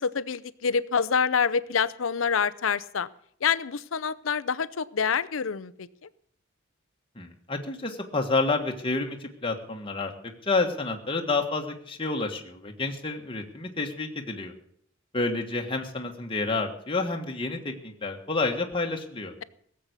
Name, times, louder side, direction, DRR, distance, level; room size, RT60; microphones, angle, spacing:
voice 1, 0.0-3.1 3.4-6.1, left 6 dB, 80° left, 18 dB, 0.6 m, -27 dB
voice 2, 7.1-10.1 10.4-14.5 15.1-19.3, left 3 dB, 25° left, 2 dB, 1.5 m, -29 dB
17.5 x 7.7 x 8.2 m, 0.65 s
head